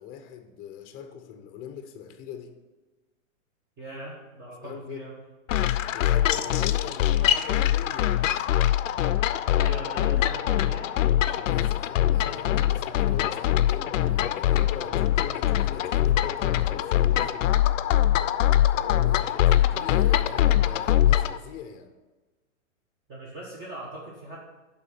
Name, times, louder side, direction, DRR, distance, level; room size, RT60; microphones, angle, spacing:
voice 1, 0.0-2.6 4.6-5.0 5.9-8.4 11.2-17.7 18.7-21.9, left 8 dB, 25° left, 0.7 m, -41 dB
voice 2, 3.8-5.1 9.6-11.0 23.1-24.4, right 1 dB, 25° right, 1.3 m, -39 dB
sound 1, 5.5-21.4, left 12 dB, 70° left, 0.5 m, -23 dB
8.8 x 3.8 x 5.9 m
hypercardioid pair, 135°, 40 cm